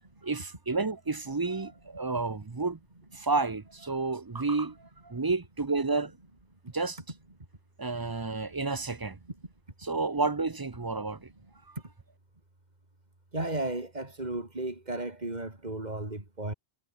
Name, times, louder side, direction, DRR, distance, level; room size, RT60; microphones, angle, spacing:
voice 1, 0.2-2.8 3.1-4.8 5.0-6.2 6.7-7.0 7.8-9.2 9.8-11.3 11.7-11.8, right 3 dB, 25° right, 0.6 m, -30 dB
voice 2, 13.3-16.5, right 2 dB, 40° right, 3.8 m, -34 dB
omnidirectional pair, 1.1 m